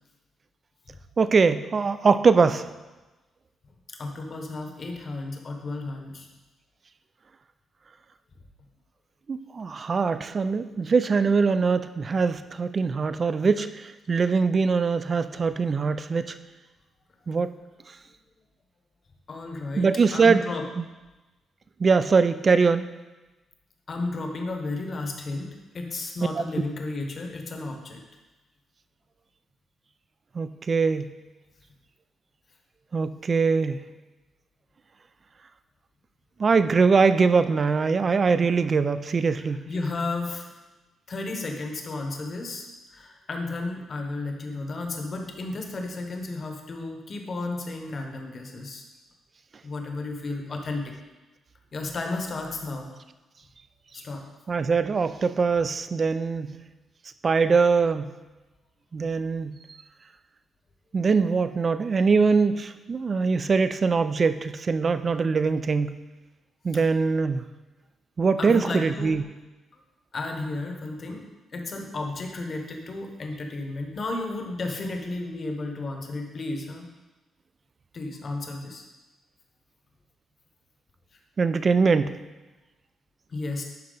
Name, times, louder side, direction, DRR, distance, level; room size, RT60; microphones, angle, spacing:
voice 1, 1.2-2.6 9.3-16.4 17.3-17.5 19.8-20.4 20.8-20.9 21.8-22.9 30.4-31.1 32.9-33.8 36.4-39.6 54.5-56.5 57.2-58.1 58.9-59.6 60.9-65.9 66.6-67.4 68.2-69.2 81.4-82.2, right 5 dB, 30° right, 12 dB, 0.3 m, -22 dB
voice 2, 3.9-6.3 15.3-15.5 19.3-20.6 23.9-28.0 39.5-40.5 41.1-48.8 49.6-50.9 51.7-52.9 53.9-54.2 66.7-66.8 68.4-69.2 70.1-71.2 71.5-76.9 77.9-78.8 83.3-83.6, left 2 dB, 35° left, 3 dB, 1.0 m, -33 dB
11.5 x 4.4 x 3.9 m, 1.1 s
cardioid pair, 155°, 0 cm